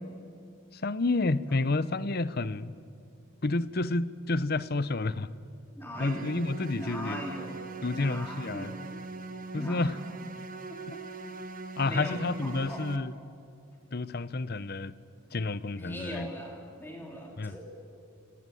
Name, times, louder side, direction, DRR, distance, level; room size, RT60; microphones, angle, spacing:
voice 1, 0.7-2.7 3.4-5.3 6.0-7.2 7.8-8.7 9.5-10.0 10.9-11.0 11.8-13.2 13.9-14.9 15.3-16.3 17.4-17.6, left 3 dB, 45° left, 16 dB, 0.7 m, -30 dB
voice 2, 5.8-6.3 6.8-7.6 7.9-8.8 9.5-9.9 10.7-11.0 11.8-12.1 12.4-12.8 15.7-17.6, equal, 10° left, 0 dB, 3.4 m, -40 dB
sound 1, 5.9-13.0, right 3 dB, 40° right, 1.5 m, -41 dB
30.0 x 19.5 x 9.3 m, 2.5 s
head